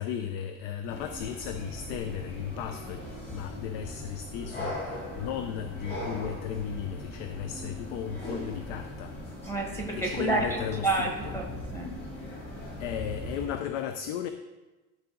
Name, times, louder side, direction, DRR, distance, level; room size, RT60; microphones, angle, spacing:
voice 1, 0.0-3.0 3.3-9.1 9.9-11.3 12.8-14.3, left 9 dB, 70° left, 8 dB, 0.6 m, -35 dB
sound 1, 0.9-13.5, left 1 dB, 25° left, 2.4 m, -39 dB
voice 2, 9.4-12.0, right 2 dB, 5° left, 0 dB, 1.1 m, -30 dB
12.0 x 4.1 x 3.8 m, 1.1 s
cardioid pair, 155°, 38 cm